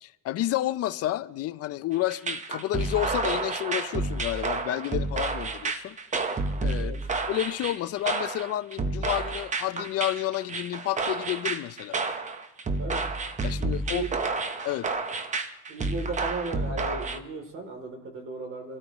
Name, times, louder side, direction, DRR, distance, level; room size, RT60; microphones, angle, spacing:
voice 1, 0.0-5.9 6.6-6.9 7.3-12.0 13.4-14.0 14.6-14.9, left 14 dB, 55° left, 0.5 m, -30 dB
sound 1, 2.1-17.2, right 3 dB, 25° right, 1.0 m, -30 dB
voice 2, 12.8-13.1 13.9-14.1 15.7-18.8, right 3 dB, 45° right, 3.0 m, -36 dB
26.0 x 13.5 x 3.0 m
cardioid pair, 135°, 29 cm